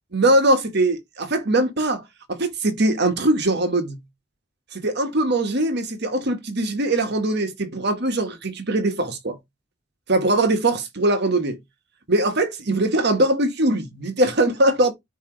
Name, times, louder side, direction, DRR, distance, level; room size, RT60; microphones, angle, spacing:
voice 1, 0.1-2.0 2.3-4.0 4.7-9.4 10.1-11.6 12.1-14.9, right 1 dB, 60° right, 1.4 m, -21 dB
8.3 x 2.9 x 5.1 m
head